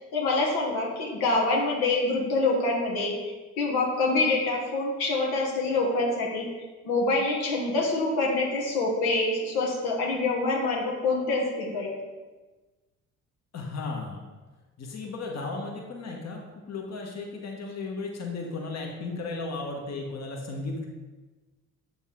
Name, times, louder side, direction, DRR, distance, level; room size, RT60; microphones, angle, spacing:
voice 1, 0.1-6.5 6.8-12.0, left 2 dB, 70° left, -2 dB, 1.3 m, -26 dB
voice 2, 13.5-14.2 14.8-20.9, left 3 dB, 40° left, 0 dB, 1.3 m, -35 dB
7.2 x 4.0 x 3.7 m, 1.3 s
hypercardioid pair, 50°, 39 cm